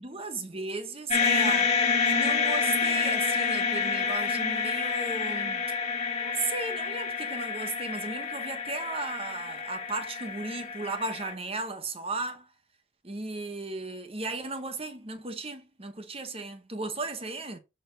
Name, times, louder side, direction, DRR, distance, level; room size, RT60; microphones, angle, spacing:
voice 1, 0.0-5.7 6.2-12.5 13.0-17.6, right 3 dB, 30° right, 1.1 m, -35 dB
sound 1, 1.1-11.3, left 5 dB, 35° left, 1.7 m, -28 dB
6.9 x 4.6 x 5.1 m
head